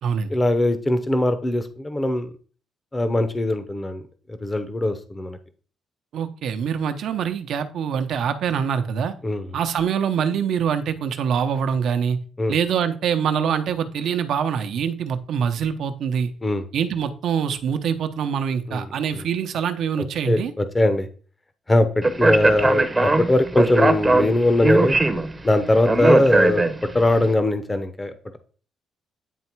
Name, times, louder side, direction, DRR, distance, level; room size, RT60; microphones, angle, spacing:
voice 1, 0.3-2.3 2.9-4.0 4.3-5.4 9.2-9.5 12.4-12.6 16.4-16.6 18.7-18.9 19.1-19.2 20.3-21.1 21.7-25.0 25.4-26.6 26.9-28.4, left 1 dB, 20° left, 9 dB, 0.8 m, -21 dB
voice 2, 6.1-9.1 9.5-12.2 12.5-16.3 16.7-20.5, right 7 dB, 70° right, 8 dB, 0.8 m, -24 dB
Speech, 22.0-27.1, right 2 dB, 20° right, 0.8 m, -20 dB
9.2 x 3.2 x 4.5 m, 0.41 s
cardioid pair, 90°, 0 cm